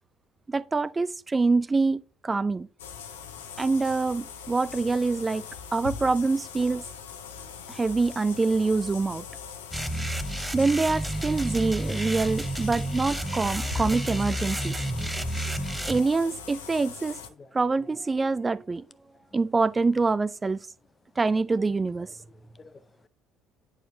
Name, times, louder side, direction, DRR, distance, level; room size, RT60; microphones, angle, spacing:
voice 1, 0.5-2.7 3.6-5.4 5.7-6.8 7.7-9.2 10.5-14.8 15.9-17.2 17.5-18.8 19.3-20.7 21.2-22.1, right 3 dB, 25° right, 0.4 m, -25 dB
sound 1, 2.8-17.3, left 7 dB, 80° left, 0.8 m, -41 dB
sound 2, 9.7-16.0, right 1 dB, 5° right, 0.8 m, -31 dB
sound 3, 10.0-15.2, left 4 dB, 65° left, 2.1 m, -54 dB
voice 2, 14.9-15.9 17.4-17.8 21.6-21.7 22.3-23.1, left 4 dB, 30° left, 0.6 m, -52 dB
9.0 x 4.6 x 3.6 m
hypercardioid pair, 55°, 0 cm